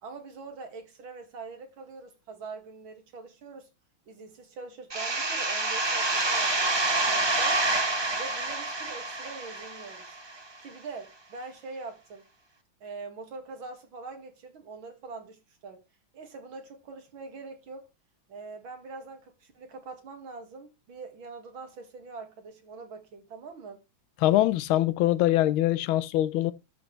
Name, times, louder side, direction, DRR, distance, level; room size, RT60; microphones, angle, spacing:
voice 1, 0.0-3.7 4.1-7.6 8.1-10.2 10.6-12.2 12.8-15.8 16.1-17.8 18.3-23.8, right 4 dB, 75° right, 2.7 m, -43 dB
sound 1, 4.9-10.4, right 2 dB, 35° right, 0.4 m, -27 dB
voice 2, 24.2-26.5, left 14 dB, 85° left, 1.5 m, -23 dB
12.5 x 6.1 x 3.2 m
omnidirectional pair, 2.2 m